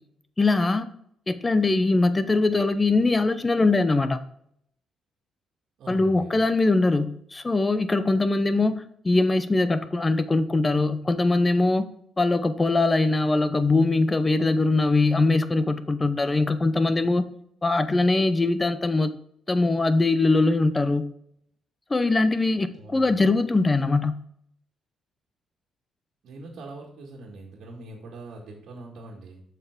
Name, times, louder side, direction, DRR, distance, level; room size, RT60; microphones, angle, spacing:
voice 1, 0.4-0.9 1.3-4.2 5.9-11.8 12.2-17.2 17.6-19.1 19.5-21.0 21.9-24.2, left 3 dB, 20° left, 12 dB, 0.7 m, -22 dB
voice 2, 5.8-6.4 22.7-23.3 26.2-29.4, right 2 dB, 70° right, -3 dB, 1.7 m, -42 dB
7.7 x 5.9 x 3.6 m, 0.70 s
cardioid pair, 90°, 0 cm